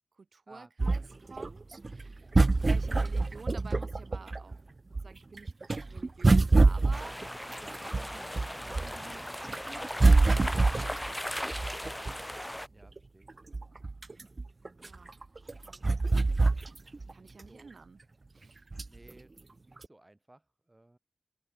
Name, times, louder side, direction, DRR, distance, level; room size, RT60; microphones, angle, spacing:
voice 1, 0.1-2.3 2.6-4.6 5.0-7.1 7.6-11.1 14.8-15.1 15.6-16.3 17.1-18.0 18.3-18.6, right 4 dB, 90° right, 5.0 m, -50 dB
sound 1, 0.8-4.6 4.9-9.0 9.4-12.4 13.0-13.1 13.3-17.1 17.4-17.5 18.7-19.1 19.8-19.9, right 3 dB, 50° right, 0.3 m, -26 dB
voice 2, 1.0-1.6 3.1-3.2 12.7-13.3 15.4-15.7 16.1-16.5 17.1-17.7 18.9-21.0, right 1 dB, 25° right, 4.8 m, -59 dB
sound 2, 6.9-12.7, equal, 10° left, 1.1 m, -38 dB
open air
wide cardioid pair, 75°, 0 cm